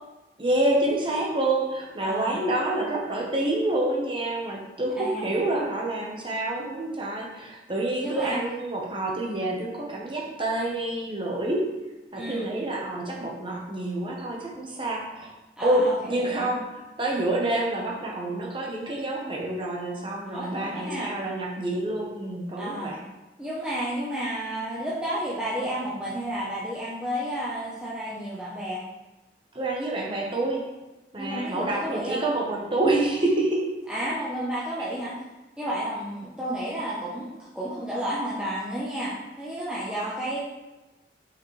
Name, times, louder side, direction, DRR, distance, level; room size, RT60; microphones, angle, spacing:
voice 1, 0.4-11.6 12.1-15.3 15.6-23.0 29.5-30.7 31.1-33.6, right 2 dB, 30° right, -1 dB, 1.1 m, -27 dB
voice 2, 2.0-2.4 5.0-5.3 8.0-8.4 12.1-12.5 15.6-16.5 20.3-21.1 22.6-22.9 23.4-28.8 31.2-32.2 33.9-35.2 35.6-40.4, right 1 dB, 5° right, -9 dB, 0.9 m, -31 dB
5.8 x 5.1 x 3.3 m, 1.1 s
head